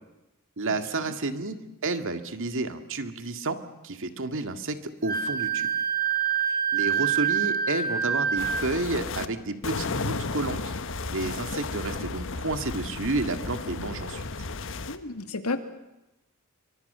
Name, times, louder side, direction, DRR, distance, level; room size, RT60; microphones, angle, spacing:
voice 1, 0.6-1.6 1.8-3.6 3.8-5.7 6.7-10.7 11.1-14.3, right 3 dB, 60° right, 8 dB, 2.1 m, -31 dB
Wind instrument woodwind instrument, 5.1-8.8, right 7 dB, 45° right, 4.8 m, -26 dB
sound 1, 8.4-9.3 9.6-15.0, left 3 dB, 60° left, 1.4 m, -33 dB
voice 2, 14.9-15.6, left 3 dB, 85° left, 8 dB, 2.3 m, -31 dB
28.0 x 24.5 x 6.8 m, 0.97 s
head